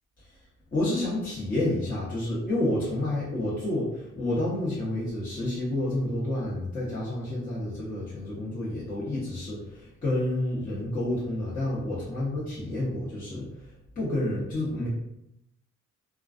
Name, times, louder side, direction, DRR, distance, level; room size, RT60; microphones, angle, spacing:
voice 1, 0.7-14.9, left 1 dB, 30° left, -10 dB, 0.9 m, -29 dB
2.3 x 2.2 x 2.4 m, 0.81 s
cardioid pair, 90°, 30 cm